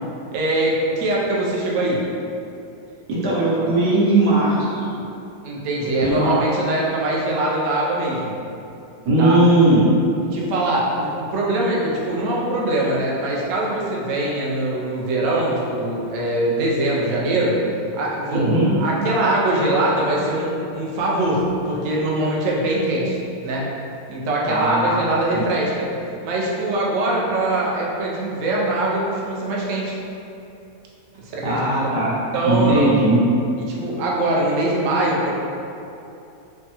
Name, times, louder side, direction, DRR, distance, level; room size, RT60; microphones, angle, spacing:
voice 1, 0.3-2.0 5.4-8.3 9.2-9.4 10.3-17.6 18.0-18.4 18.7-23.7 24.1-25.9 26.2-30.0 31.2-31.9 32.3-32.9 33.7-35.3, right 1 dB, 70° right, -4 dB, 0.8 m, -22 dB
voice 2, 3.1-4.8 6.0-6.4 9.0-9.9 18.3-18.7 24.5-24.9 25.3-25.4 31.4-33.2, right 1 dB, 90° right, -8 dB, 1.4 m, -18 dB
3.3 x 2.1 x 2.8 m, 2.8 s
omnidirectional pair, 1.7 m